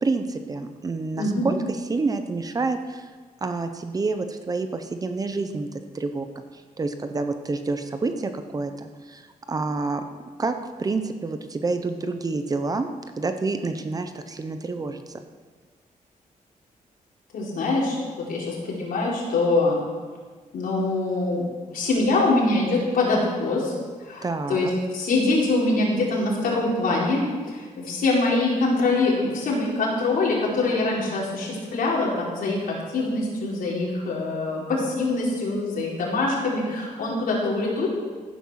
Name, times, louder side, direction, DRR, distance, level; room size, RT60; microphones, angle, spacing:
voice 1, 0.0-3.1 3.4-6.3 6.8-9.2 9.5-10.0 10.4-12.9 13.2-15.0 24.2-24.7, right 3 dB, 25° right, 8 dB, 0.8 m, -28 dB
voice 2, 17.3-19.8 20.5-23.7 24.0-37.9, left 2 dB, 85° left, -4 dB, 4.5 m, -24 dB
15.5 x 9.7 x 6.4 m, 1.5 s
wide cardioid pair, 175°, 14 cm